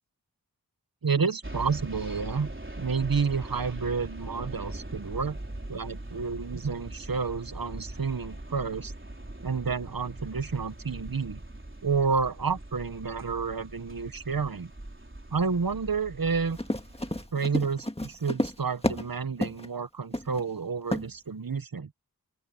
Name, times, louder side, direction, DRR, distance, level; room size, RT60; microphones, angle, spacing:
voice 1, 1.0-2.5 2.8-5.4 5.7-8.9 9.4-11.4 11.8-14.7 15.3-16.6 17.3-21.9, right 5 dB, 70° right, 1.0 m, -30 dB
sound 1, 1.4-17.3, right 1 dB, 35° right, 4.1 m, -41 dB
Run, 16.5-19.1 19.4-19.7 20.1-20.4 20.9-21.1, left 1 dB, 15° left, 1.7 m, -30 dB
open air
wide cardioid pair, 40°, 36 cm